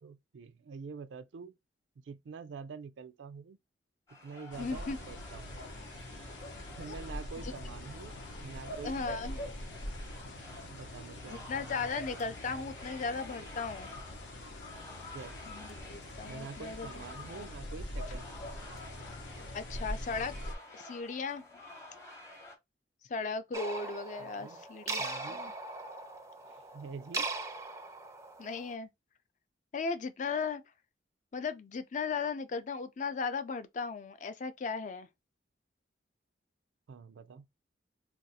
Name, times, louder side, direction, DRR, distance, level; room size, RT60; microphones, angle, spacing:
voice 1, 0.0-1.6 2.0-3.6 4.2-5.6 6.7-9.4 10.7-11.5 15.1-15.4 16.3-18.3 24.2-24.7 25.0-25.5 26.5-27.3 36.9-37.5, right 5 dB, 85° right, 0.4 m, -46 dB
sound 1, 4.1-22.6, left 2 dB, 15° left, 0.8 m, -51 dB
sound 2, 4.5-20.5, left 1 dB, 90° left, 0.8 m, -43 dB
voice 2, 4.6-5.0 6.9-7.0 7.4-7.5 8.8-9.4 11.3-13.9 15.5-16.9 17.3-17.5 19.5-20.3 20.7-21.5 23.1-25.5 28.4-28.9 29.7-30.6 31.3-35.1, left 4 dB, 45° left, 0.4 m, -36 dB
sound 3, 23.5-28.7, right 3 dB, 15° right, 0.4 m, -40 dB
2.5 x 2.3 x 4.0 m
head